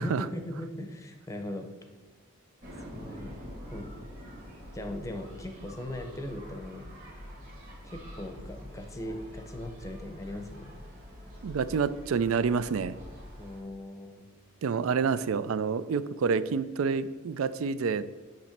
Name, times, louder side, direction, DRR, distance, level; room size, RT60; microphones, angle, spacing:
voice 1, 0.0-1.7 2.9-3.3 3.7-3.9 4.7-6.9 7.8-10.8 13.4-14.2, left 1 dB, 15° left, 6 dB, 0.7 m, -39 dB
sound 1, 2.6-13.6, equal, 40° right, 2.0 m, -46 dB
voice 2, 11.4-13.0 14.6-18.0, right 5 dB, 75° right, 15 dB, 0.4 m, -28 dB
8.5 x 3.1 x 5.8 m, 1.3 s
head